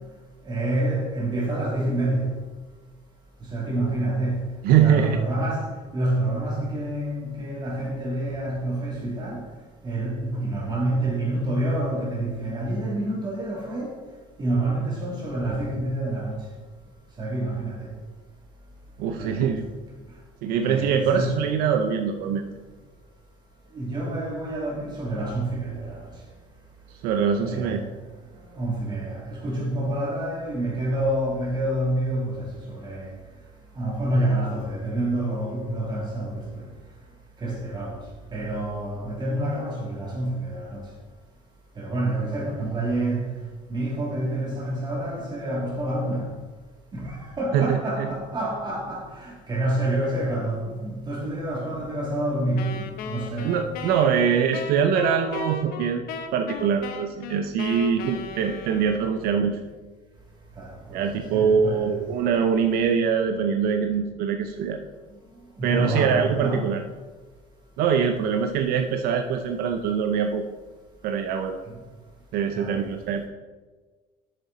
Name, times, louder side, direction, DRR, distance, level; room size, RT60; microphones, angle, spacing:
voice 1, 0.4-2.4 3.5-4.5 4.8-9.4 9.8-13.9 14.4-16.4 17.2-17.9 19.2-19.6 20.6-21.5 23.7-26.0 27.4-27.9 28.5-33.1 33.7-36.5 37.4-38.0 38.3-40.8 41.8-43.3 43.7-46.3 46.9-53.5 60.6-62.0 65.6-66.7 72.5-72.8, right 1 dB, 30° right, 2.9 m, -28 dB
voice 2, 4.6-5.2 19.0-19.7 20.4-22.5 27.0-27.8 47.5-48.1 53.4-59.6 60.9-64.8 65.6-66.8 67.8-70.4 71.0-71.6 72.3-73.2, right 7 dB, 70° right, 0.6 m, -23 dB
Wind instrument woodwind instrument, 52.6-59.4, left 5 dB, 70° left, 0.9 m, -36 dB
7.5 x 6.9 x 4.2 m
cardioid pair, 145°, 16 cm